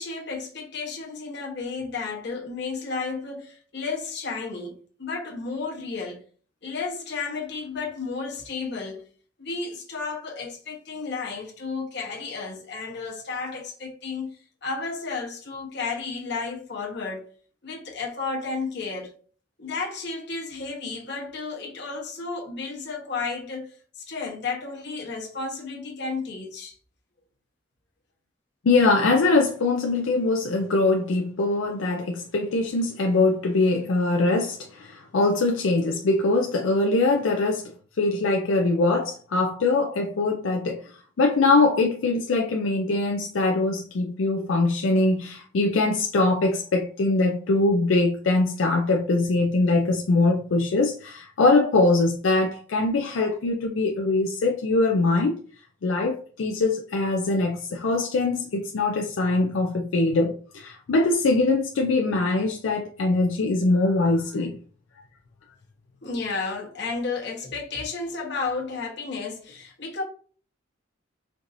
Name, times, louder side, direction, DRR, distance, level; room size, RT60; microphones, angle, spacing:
voice 1, 0.0-6.2 6.6-9.0 9.4-14.4 14.6-17.3 17.6-19.1 19.6-26.7 66.0-70.0, left 4 dB, 60° left, 1.1 m, -32 dB
voice 2, 28.6-37.7 38.0-40.9 41.2-55.4 55.8-64.6, left 3 dB, 85° left, 0.4 m, -22 dB
4.5 x 2.6 x 2.6 m
head